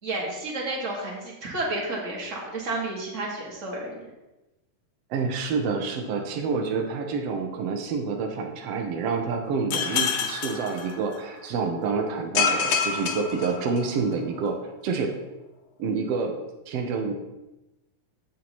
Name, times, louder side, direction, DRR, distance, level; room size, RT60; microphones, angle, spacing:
voice 1, 0.0-4.1, right 2 dB, 30° right, -3 dB, 1.5 m, -31 dB
voice 2, 5.1-14.6 14.8-15.1 15.8-16.3 16.7-17.1, right 5 dB, 90° right, 2 dB, 1.3 m, -28 dB
sound 1, 9.7-11.5 12.3-14.1, left 6 dB, 75° left, 2.7 m, -27 dB
16.0 x 5.7 x 3.0 m, 0.97 s
omnidirectional pair, 4.2 m